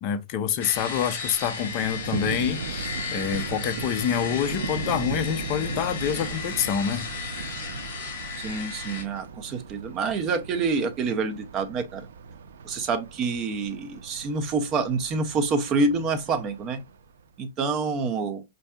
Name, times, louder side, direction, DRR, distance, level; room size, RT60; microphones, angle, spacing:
voice 1, 0.0-7.1, left 9 dB, 30° left, 0.5 m, -27 dB
sound 1, 0.6-9.0, left 5 dB, 50° left, 2.2 m, -35 dB
Thunder, 1.4-17.3, right 5 dB, 85° right, 0.4 m, -37 dB
voice 2, 8.4-12.1 12.6-16.8 17.4-18.4, right 4 dB, 20° right, 0.5 m, -27 dB
5.4 x 2.6 x 2.3 m
supercardioid pair, 170°, 0 cm